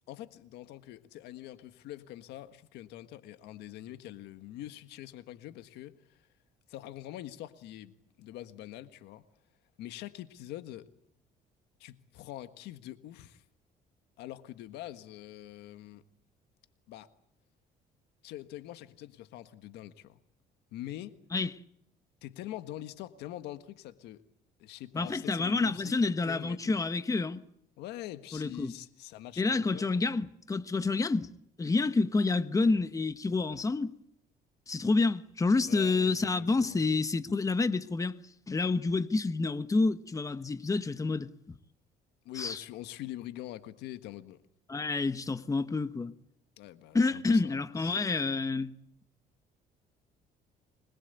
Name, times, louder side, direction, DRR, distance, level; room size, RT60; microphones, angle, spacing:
voice 1, 0.1-6.3 6.7-9.2 9.8-10.9 11.8-13.4 14.2-16.0 16.9-17.1 18.2-20.2 20.7-21.2 22.2-24.2 24.6-26.8 27.8-30.1 35.7-36.8 42.3-44.4 46.6-48.0, left 14 dB, 90° left, 1.6 m, -44 dB
voice 2, 24.9-27.4 28.3-28.7 29.4-31.3 31.6-33.9 34.7-38.2 38.5-41.3 42.3-42.6 44.7-46.1 46.9-48.8, left 3 dB, 20° left, 1.2 m, -28 dB
25.0 x 22.0 x 8.2 m
cardioid pair, 110°, 17 cm